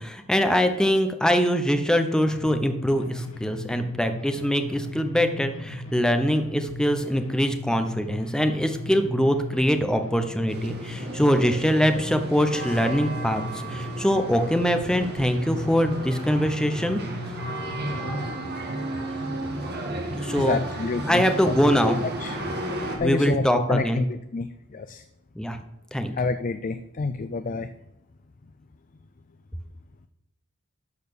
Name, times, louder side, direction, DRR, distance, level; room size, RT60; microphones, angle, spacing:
voice 1, 0.0-17.0 20.1-20.6 21.1-22.0 23.0-24.0 25.4-25.6 25.9-26.1, equal, 5° left, 7 dB, 0.8 m, -23 dB
sound 1, 2.3-18.3, left 1 dB, 90° left, 2.0 m, -37 dB
sound 2, 10.5-23.0, right 1 dB, 50° right, 1.7 m, -33 dB
voice 2, 20.4-21.2 22.0-22.4 23.0-25.0 26.2-27.7, left 4 dB, 40° left, 10 dB, 0.4 m, -28 dB
12.0 x 4.2 x 6.9 m, 0.88 s
head